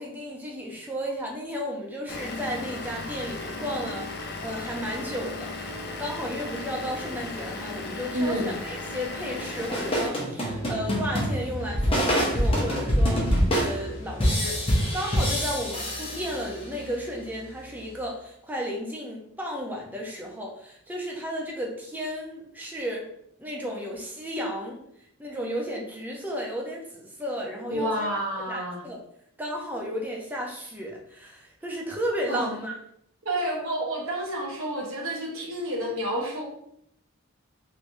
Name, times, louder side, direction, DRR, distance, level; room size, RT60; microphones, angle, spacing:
voice 1, 0.0-5.7 6.0-23.1 23.4-24.8 25.2-28.1 28.5-29.0 29.4-32.7, equal, 10° right, -2 dB, 0.6 m, -33 dB
Vehicle / Engine, 2.1-10.1, left 2 dB, 50° left, 0.4 m, -36 dB
voice 2, 8.1-8.5 27.7-28.8 32.3-32.5 33.2-36.4, right 1 dB, 65° right, -2 dB, 1.1 m, -29 dB
sound 1, 9.4-16.8, equal, 25° left, 0.8 m, -26 dB
sound 2, 10.5-18.1, left 1 dB, 75° left, 0.9 m, -41 dB
3.2 x 3.2 x 2.6 m, 0.74 s
head